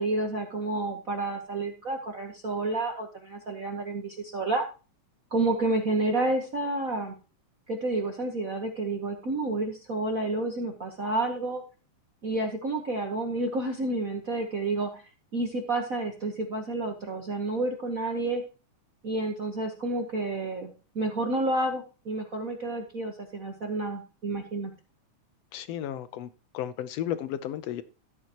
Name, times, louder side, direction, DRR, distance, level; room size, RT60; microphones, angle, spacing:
voice 1, 0.0-4.7 5.3-7.2 7.7-11.6 12.2-15.0 15.3-18.4 19.0-24.7, right 2 dB, 60° right, 3 dB, 0.9 m, -30 dB
voice 2, 25.5-26.3 26.5-27.8, left 11 dB, 70° left, 13 dB, 1.7 m, -33 dB
13.5 x 8.5 x 2.9 m, 0.33 s
omnidirectional pair, 3.3 m